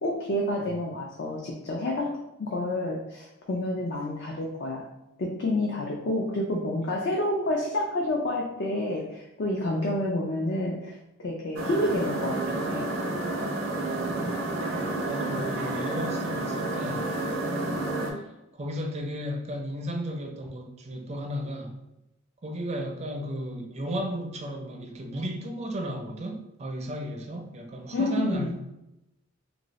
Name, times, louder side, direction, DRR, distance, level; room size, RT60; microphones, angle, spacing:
voice 1, 0.0-2.1 2.4-4.8 5.2-10.9 11.2-12.9 27.9-28.5, left 1 dB, 55° left, -1 dB, 0.4 m, -29 dB
sound 1, 11.6-18.1, right 2 dB, 80° right, 0.6 m, -30 dB
voice 2, 14.0-14.4 15.1-17.1 18.1-21.8 22.4-28.6, equal, 30° right, 3 dB, 0.4 m, -34 dB
2.6 x 2.6 x 3.0 m, 0.90 s
head